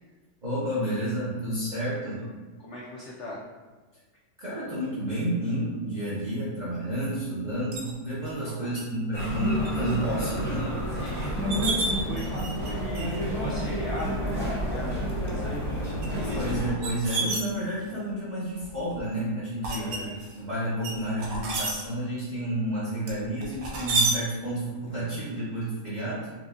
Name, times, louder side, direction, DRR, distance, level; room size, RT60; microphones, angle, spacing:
voice 1, 0.4-2.2 4.4-10.8 11.2-11.3 16.3-26.3, right 1 dB, 40° right, -11 dB, 0.6 m, -30 dB
voice 2, 2.6-3.4 8.4-8.7 11.0-15.7 19.7-20.1, left 1 dB, 75° left, -5 dB, 0.6 m, -39 dB
sound 1, 7.7-7.9 8.8-8.9 9.3-9.7 10.1-10.2 11.0-11.1 11.3-12.7 12.9-13.3 14.0-14.1 14.9-15.3 16.0-18.0 18.6-19.0 19.6-20.4 20.8-21.7 23.1-24.1, right 2 dB, 65° right, 1.0 m, -30 dB
sound 2, 9.1-16.7, equal, 15° right, 1.4 m, -30 dB
4.6 x 2.3 x 2.4 m, 1.3 s
omnidirectional pair, 1.8 m